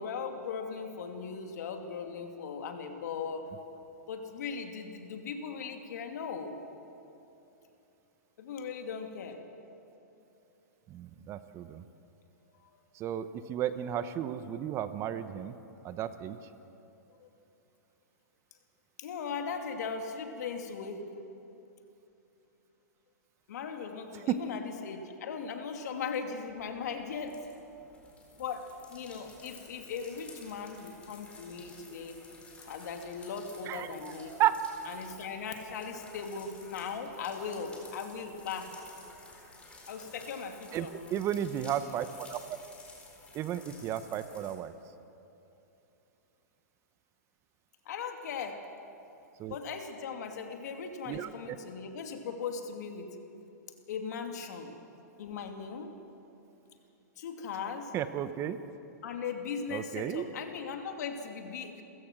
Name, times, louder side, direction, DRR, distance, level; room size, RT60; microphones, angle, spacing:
voice 1, 0.0-3.5 4.1-6.6 8.4-9.4 12.5-12.7 17.2-17.3 19.0-21.1 23.5-27.4 28.4-32.2 32.6-34.3 34.9-38.7 39.9-40.9 47.8-48.7 49.5-53.2 53.9-54.7 55.2-55.9 57.2-57.9 59.0-61.8, left 6 dB, 70° left, 4 dB, 2.5 m, -38 dB
voice 2, 10.9-11.8 12.9-15.6 15.8-16.4 24.2-24.4 33.7-34.6 40.7-42.4 43.3-44.7 49.4-49.6 51.1-51.6 57.9-58.6 59.7-60.3, right 11 dB, 30° right, 12 dB, 0.9 m, -33 dB
sound 1, 26.5-44.5, left 3 dB, 10° left, 4.2 m, -53 dB
29.5 x 15.5 x 6.1 m, 2.9 s
hypercardioid pair, 135°, 10 cm